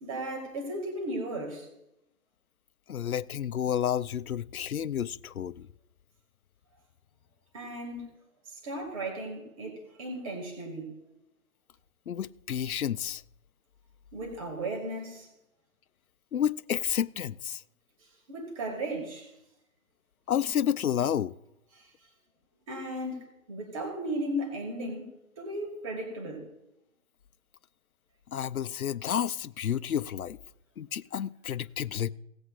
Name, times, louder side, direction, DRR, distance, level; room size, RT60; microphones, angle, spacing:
voice 1, 0.0-1.7 7.5-8.1 8.5-10.9 14.1-15.3 18.3-19.3 21.7-21.9 22.7-26.5, right 1 dB, 25° right, 2.1 m, -36 dB
voice 2, 2.9-5.7 12.1-13.2 16.3-17.6 20.3-21.3 28.3-30.4 30.8-32.1, left 9 dB, 80° left, 0.7 m, -30 dB
18.5 x 8.0 x 2.5 m
hypercardioid pair, 165°, 42 cm